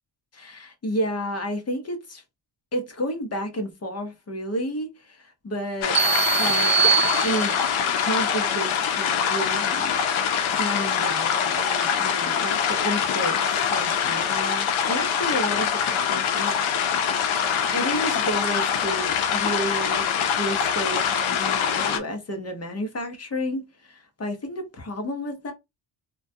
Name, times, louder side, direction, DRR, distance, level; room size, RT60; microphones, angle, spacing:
voice 1, 0.3-2.2 2.7-6.0 6.4-6.9 7.2-7.6 7.9-10.0 10.5-17.0 17.7-25.5, equal, 30° left, 0.7 m, -31 dB
sound 1, 5.8-22.0, left 7 dB, 85° left, 0.6 m, -24 dB
sound 2, 6.0-7.8, right 8 dB, 35° right, 0.5 m, -23 dB
2.2 x 2.2 x 2.6 m
cardioid pair, 95°, 47 cm